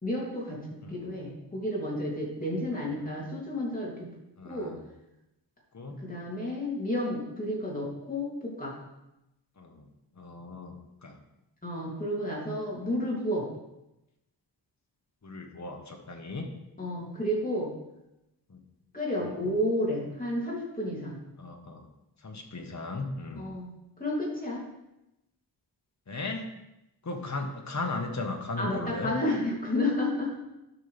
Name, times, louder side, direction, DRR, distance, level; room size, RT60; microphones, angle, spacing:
voice 1, 0.0-4.1 4.4-4.7 6.0-8.7 11.6-13.5 16.8-17.7 18.9-21.2 23.4-23.7 24.0-24.6 28.6-30.4, left 1 dB, 20° left, -5 dB, 2.9 m, -31 dB
voice 2, 4.4-4.8 5.7-6.1 9.6-9.9 10.2-10.8 11.0-11.2 15.2-16.5 18.5-18.6 19.3-19.4 21.4-21.9 22.2-23.5 26.1-26.4 27.0-29.1, left 3 dB, 40° left, 3 dB, 1.4 m, -36 dB
12.0 x 5.8 x 3.5 m, 0.91 s
wide cardioid pair, 90°, 44 cm